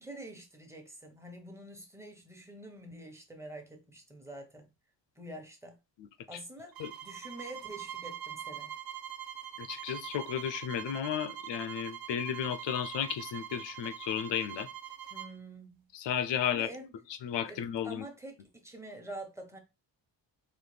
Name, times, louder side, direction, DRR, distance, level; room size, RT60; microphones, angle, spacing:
voice 1, 0.0-4.7 5.2-5.8 6.3-6.8 7.0-8.7 15.1-15.9 16.5-16.9 17.5-19.6, right 1 dB, 5° right, 1.1 m, -46 dB
sound 1, 6.7-15.4, right 10 dB, 55° right, 0.6 m, -43 dB
voice 2, 9.6-14.7 15.9-16.7 17.2-18.0, left 9 dB, 70° left, 0.7 m, -33 dB
4.1 x 3.1 x 3.3 m
cardioid pair, 100°, 45 cm